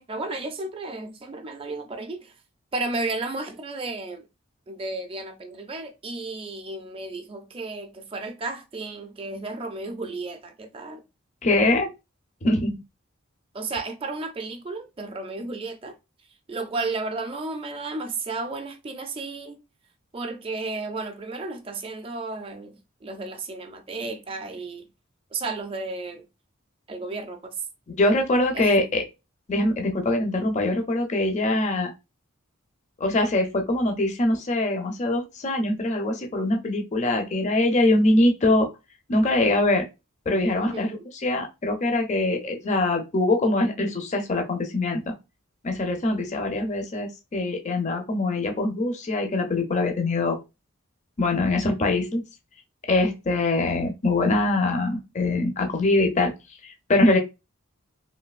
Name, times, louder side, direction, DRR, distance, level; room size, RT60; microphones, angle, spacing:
voice 1, 0.0-2.3 2.7-4.3 4.7-11.0 13.5-16.0 16.5-19.6 20.1-24.9 25.3-26.3 26.9-27.5 28.5-28.7 40.6-41.0, right 3 dB, 25° right, 0.4 m, -33 dB
voice 2, 11.4-11.9 12.4-12.8 28.0-29.0 29.5-31.9 33.0-38.7 39.1-39.8 40.3-41.0 41.2-45.1 45.6-50.4 51.2-52.2 52.9-56.3 56.6-57.2, left 2 dB, 35° left, 0.5 m, -23 dB
3.2 x 2.6 x 2.3 m
head